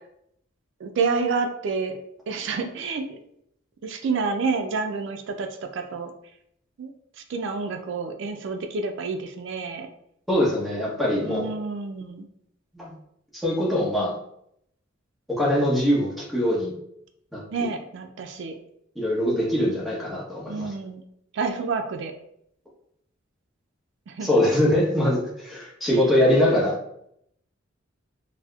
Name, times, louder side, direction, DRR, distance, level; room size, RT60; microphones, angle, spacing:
voice 1, 0.8-2.0 2.3-3.1 3.8-6.1 6.8-6.9 7.3-9.9 11.2-12.3 17.5-18.5 20.5-21.0 21.3-22.1 24.1-24.3, right 4 dB, 65° right, 5 dB, 0.4 m, -28 dB
voice 2, 10.3-11.5 12.7-12.9 13.4-14.2 15.3-16.7 17.3-17.4 19.0-20.7 24.2-26.8, left 1 dB, ahead, -6 dB, 0.9 m, -22 dB
4.1 x 2.1 x 2.3 m, 0.73 s
head